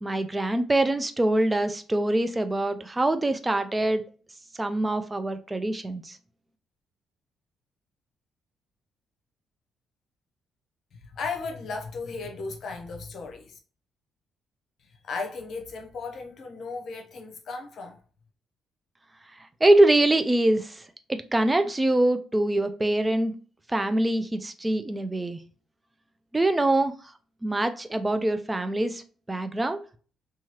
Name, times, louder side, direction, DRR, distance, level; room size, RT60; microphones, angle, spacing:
voice 1, 0.0-4.0 4.6-6.2 19.6-20.8 21.1-23.3 23.7-25.4 26.3-26.9 27.4-29.0 29.3-29.8, right 1 dB, 15° right, 0.3 m, -24 dB
voice 2, 11.1-13.6 15.0-18.0, left 4 dB, 60° left, 0.7 m, -35 dB
2.8 x 2.3 x 2.9 m
cardioid pair, 90°, 0 cm